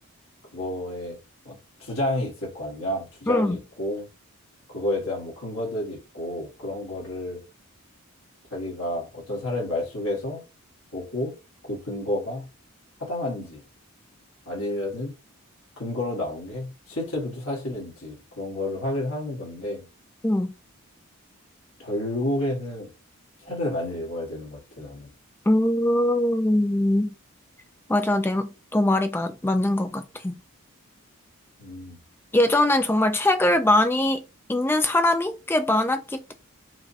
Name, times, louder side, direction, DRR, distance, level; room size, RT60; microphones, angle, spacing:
voice 1, 0.5-1.2 1.4-4.0 4.7-7.4 8.5-10.4 10.9-11.4 11.6-12.5 13.0-13.6 14.4-15.1 15.8-19.9 21.8-22.9 23.4-25.1 31.6-32.0, left 1 dB, 70° left, 1.5 m, -30 dB
voice 2, 3.3-3.6 20.2-20.5 25.5-27.1 27.9-30.4 32.3-34.2 34.5-36.3, left 1 dB, 10° left, 0.3 m, -22 dB
4.6 x 2.2 x 2.7 m
head